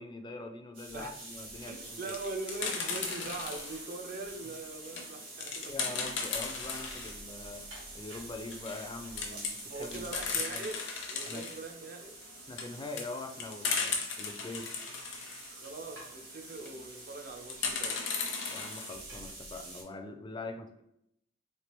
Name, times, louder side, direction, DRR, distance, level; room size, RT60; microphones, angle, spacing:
voice 1, 0.0-2.1 5.7-7.6 7.9-10.1 10.5-10.7 11.2-11.5 12.5-14.7 18.5-20.8, left 2 dB, 25° left, 6 dB, 0.3 m, -43 dB
sound 1, 0.7-19.8, right 2 dB, 80° right, 1.4 m, -47 dB
voice 2, 1.7-5.7 9.3-9.4 9.7-10.8 11.1-12.1 15.5-18.0, right 3 dB, 45° right, 5 dB, 0.5 m, -42 dB
sound 2, 1.8-3.9 4.4-7.2 7.6-7.7 7.9-8.0 8.4-8.9 9.2-11.6 12.2-15.5 16.4-16.8 17.5-18.9, left 5 dB, 65° left, 0.7 m, -36 dB
3.2 x 3.2 x 2.9 m, 0.78 s
head